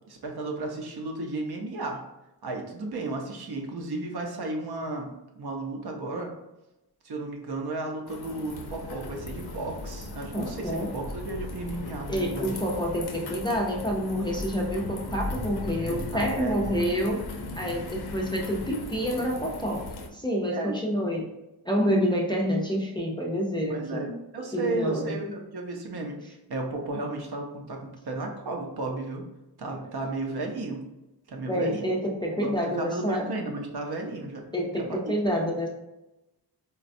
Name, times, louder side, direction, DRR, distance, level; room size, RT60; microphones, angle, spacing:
voice 1, 0.1-2.0 2.4-5.1 5.4-6.3 7.0-12.6 15.9-16.8 20.5-20.8 23.7-29.2 29.6-30.8 31.3-31.9 32.4-34.5 34.7-35.1, right 2 dB, 65° right, 2 dB, 0.7 m, -34 dB
sound 1, 8.1-20.1, left 3 dB, 65° left, 0.5 m, -41 dB
sound 2, 8.5-19.9, left 1 dB, 85° right, 1.0 m, -40 dB
voice 2, 10.3-10.9 12.1-17.2 17.5-19.8 20.1-21.3 21.7-24.1 24.5-25.2 31.5-33.3 34.5-35.7, equal, 10° left, -2 dB, 0.4 m, -28 dB
4.1 x 2.2 x 2.5 m, 0.95 s
wide cardioid pair, 110°, 42 cm